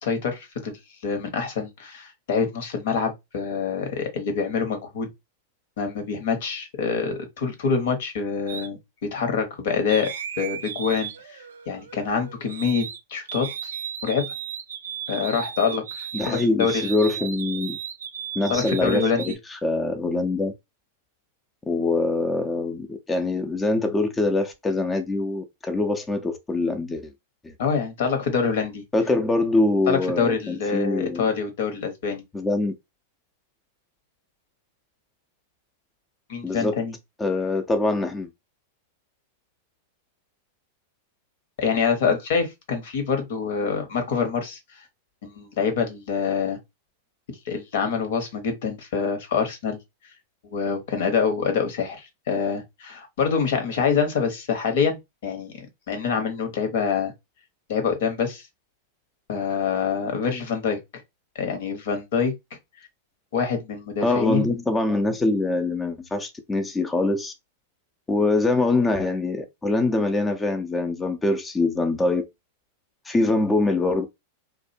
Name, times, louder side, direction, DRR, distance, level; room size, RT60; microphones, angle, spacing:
voice 1, 0.0-5.1 5.8-10.1 10.4-11.4 11.7-13.5 14.0-14.3 15.1-16.9 18.5-19.2 27.6-28.8 29.9-32.2 36.3-36.9 41.6-44.6 45.2-46.6 47.4-49.8 50.4-57.1 57.7-58.5 59.3-60.8 61.3-62.3 63.3-64.5, left 6 dB, 70° left, 0.9 m, -26 dB
sound 1, 8.5-8.7 9.9-13.0 13.3-19.4, right 8 dB, 80° right, 0.4 m, -35 dB
voice 2, 16.1-17.8 18.4-20.5 21.7-27.1 27.4-27.5 28.9-31.3 32.3-32.7 36.4-36.8 37.2-38.3 64.0-67.3 68.1-72.2 73.0-74.0, left 2 dB, 15° left, 0.4 m, -24 dB
2.5 x 2.1 x 2.6 m
hypercardioid pair, 110°, 0 cm